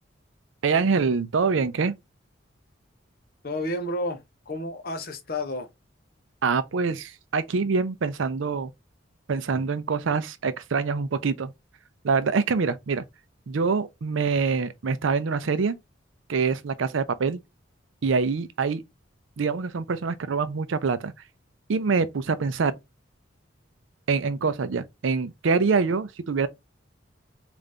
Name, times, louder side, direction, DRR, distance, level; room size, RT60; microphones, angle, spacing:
voice 1, 0.6-1.9 6.4-8.7 9.3-11.5 12.0-13.0 13.5-15.8 16.3-17.4 18.0-18.8 19.4-21.1 21.7-22.7 24.1-26.5, right 4 dB, 80° right, 0.5 m, -25 dB
voice 2, 3.4-5.7, left 1 dB, 50° left, 0.7 m, -31 dB
3.8 x 2.6 x 3.3 m
head